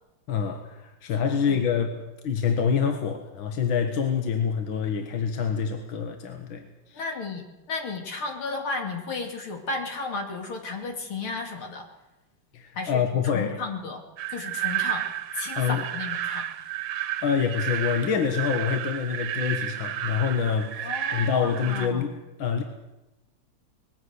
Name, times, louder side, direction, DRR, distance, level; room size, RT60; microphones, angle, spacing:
voice 1, 0.3-7.0 12.5-13.6 15.6-15.8 17.2-22.6, left 7 dB, 75° left, 5 dB, 2.2 m, -26 dB
voice 2, 1.2-1.6 6.9-11.9 12.8-14.0 14.3-15.1 15.4-16.5 20.8-22.1, left 3 dB, 90° left, 3 dB, 3.5 m, -33 dB
sound 1, 14.2-21.9, right 11 dB, 70° right, 1.6 m, -32 dB
20.5 x 16.0 x 8.1 m, 0.98 s
omnidirectional pair, 2.2 m